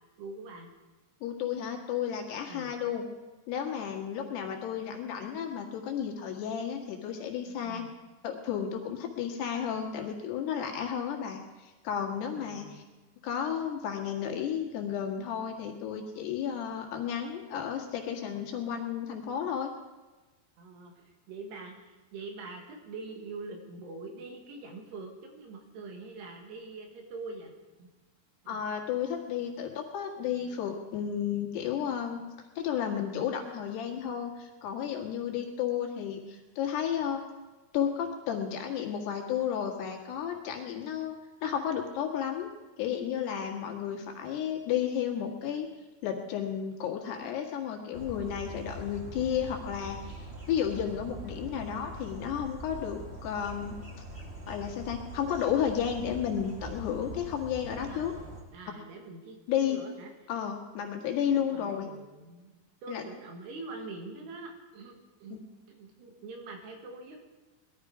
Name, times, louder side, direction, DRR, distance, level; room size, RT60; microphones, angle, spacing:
voice 1, 0.2-0.7 2.5-2.7 7.6-7.9 12.3-12.8 20.6-27.5 27.8-27.9 28.4-28.6 57.8-60.1 61.4-62.5 62.8-65.4 65.7-67.2, right 3 dB, 80° right, 2 dB, 4.0 m, -44 dB
voice 2, 1.2-3.1 3.5-7.8 8.2-12.8 13.2-19.7 28.5-32.2 32.6-37.2 37.7-41.2 41.4-42.5 42.8-45.7 46.0-53.7 54.5-58.1 59.5-59.8 60.3-61.9 62.9-63.0 65.3-65.4, left 8 dB, 80° left, 2 dB, 3.9 m, -32 dB
sound 1, 47.9-58.4, right 1 dB, 40° right, 0.8 m, -43 dB
20.0 x 12.5 x 4.9 m, 1.2 s
omnidirectional pair, 4.7 m